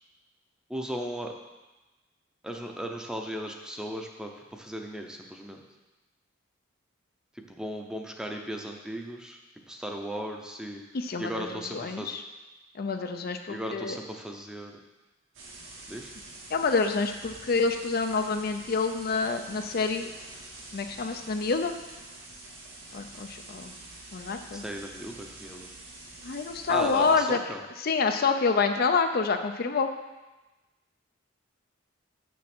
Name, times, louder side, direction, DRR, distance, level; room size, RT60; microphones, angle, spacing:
voice 1, 0.7-1.3 2.4-5.6 7.5-9.4 9.7-10.8 11.2-12.1 13.5-14.7 15.9-16.1 24.5-25.7 26.7-27.6, equal, 5° right, 2 dB, 0.7 m, -36 dB
voice 2, 10.9-12.2 12.8-14.0 16.5-20.1 20.7-21.7 22.9-23.7 24.1-24.6 26.2-27.4 27.8-29.9, left 4 dB, 50° left, 6 dB, 0.5 m, -27 dB
sound 1, 15.3-27.2, right 2 dB, 80° right, 2.1 m, -46 dB
7.2 x 6.1 x 6.0 m, 1.1 s
head